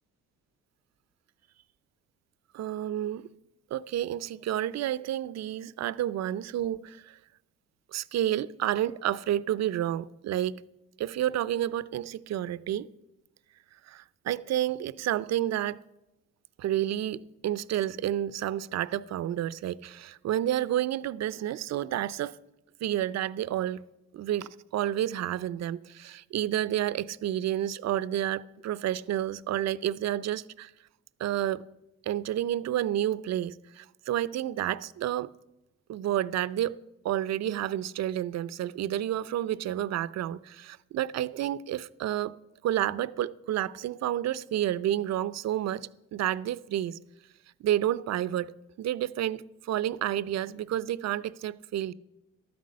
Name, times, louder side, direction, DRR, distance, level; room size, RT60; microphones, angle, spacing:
voice 1, 2.5-3.3 3.7-7.2 7.9-10.6 11.0-12.9 13.9-15.8 16.6-22.4 22.8-23.8 24.1-30.7 31.2-31.7 32.1-35.3 35.9-36.8 37.0-42.3 42.6-47.0 47.6-51.9, right 12 dB, 60° right, 0.5 m, -30 dB
12.5 x 9.5 x 6.4 m
cardioid pair, 90°, 30 cm